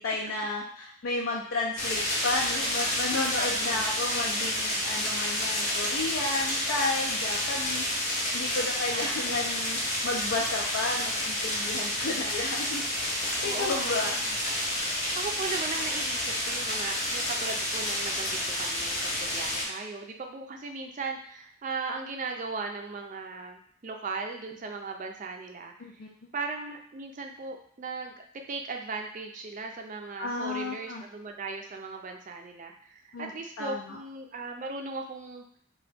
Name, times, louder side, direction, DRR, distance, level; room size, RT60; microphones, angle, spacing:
voice 1, 0.0-12.8 13.2-14.2 25.8-26.3 30.2-31.0 33.1-33.3 33.6-34.0, left 2 dB, 75° left, -2 dB, 0.4 m, -32 dB
sound 1, 1.8-19.6, left 1 dB, 35° left, 0.7 m, -30 dB
voice 2, 3.4-3.9 8.9-9.3 13.4-14.8 15.2-26.0 26.3-28.1 28.5-35.4, right 4 dB, 40° right, 3 dB, 0.4 m, -38 dB
2.9 x 2.3 x 3.3 m, 0.64 s
head